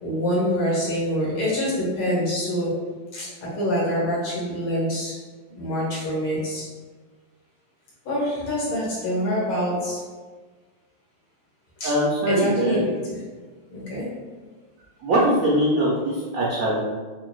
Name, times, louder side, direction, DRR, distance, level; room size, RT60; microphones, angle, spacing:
voice 1, 0.0-2.7 3.1-5.1 5.6-6.6 8.1-10.0 11.8-11.9 12.3-12.8 13.7-14.1, equal, 90° left, -5 dB, 2.2 m, -25 dB
voice 2, 11.8-12.9 15.0-16.8, right 1 dB, 85° right, -5 dB, 0.7 m, -22 dB
5.6 x 2.5 x 2.3 m, 1.4 s
omnidirectional pair, 2.3 m